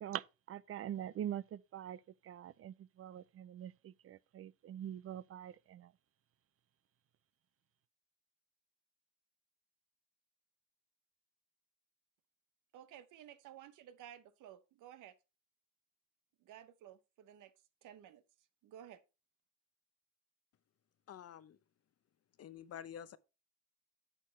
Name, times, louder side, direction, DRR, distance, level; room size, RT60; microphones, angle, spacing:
voice 1, 0.0-5.9, right 10 dB, 50° right, 0.5 m, -44 dB
voice 2, 12.7-15.1 16.4-17.5 17.8-18.2 18.6-19.0, right 11 dB, 85° right, 0.9 m, -54 dB
voice 3, 21.1-21.6 22.4-23.2, left 9 dB, 55° left, 0.7 m, -49 dB
9.9 x 6.5 x 3.2 m
cardioid pair, 90°, 30 cm